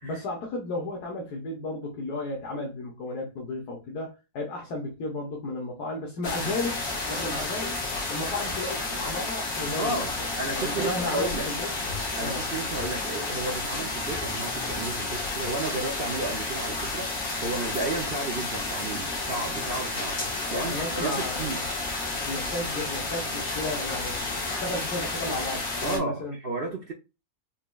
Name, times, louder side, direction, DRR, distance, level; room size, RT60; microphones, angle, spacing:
voice 1, 0.0-7.7 8.1-10.0 10.5-11.7 12.2-12.4 20.5-21.6 22.2-26.4, left 2 dB, 75° left, 1.6 m, -33 dB
sound 1, 6.2-26.0, left 2 dB, 55° left, 1.9 m, -31 dB
voice 2, 9.8-11.5 12.2-21.6 25.8-26.9, right 2 dB, 55° right, 0.6 m, -33 dB
5.7 x 3.0 x 2.3 m
omnidirectional pair, 1.7 m